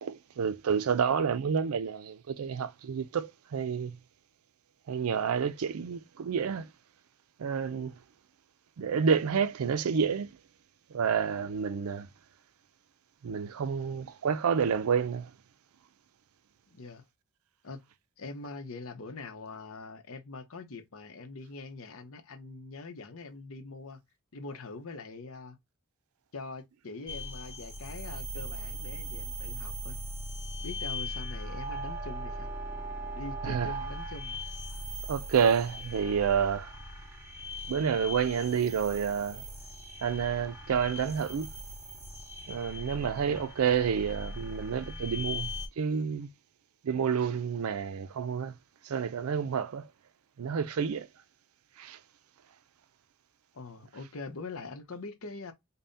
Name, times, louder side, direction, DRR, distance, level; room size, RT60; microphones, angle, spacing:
voice 1, 0.0-4.0 4.9-6.7 7.4-8.0 8.8-10.3 10.9-12.1 13.2-15.3 33.4-33.7 35.1-36.7 37.7-39.4 40.0-41.5 42.5-46.3 46.8-48.5 48.8-49.9 50.4-51.1 51.8-52.0, right 7 dB, 85° right, 0.4 m, -29 dB
voice 2, 16.7-17.0 17.6-17.8 18.2-24.0 24.3-25.6 26.3-30.0 30.6-32.5 33.1-34.4 43.1-43.5 53.5-55.5, left 3 dB, 80° left, 0.8 m, -43 dB
sound 1, 27.1-45.7, equal, 10° right, 0.7 m, -39 dB
5.4 x 2.2 x 2.6 m
head